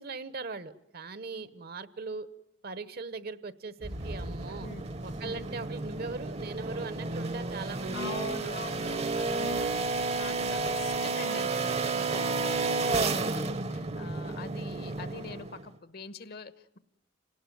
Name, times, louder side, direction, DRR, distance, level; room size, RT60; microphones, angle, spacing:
voice 1, 0.0-2.3 2.6-4.7 5.0-8.2, right 4 dB, 55° right, 15 dB, 1.1 m, -40 dB
sound 1, 3.8-15.7, right 3 dB, 35° right, 0.9 m, -32 dB
sound 2, 3.8-11.0, equal, 80° right, 3.3 m, -47 dB
voice 2, 4.5-4.8 5.2-5.5 7.9-9.9 10.2-16.8, left 4 dB, 55° left, 14 dB, 1.2 m, -44 dB
27.5 x 19.0 x 9.3 m, 0.82 s
head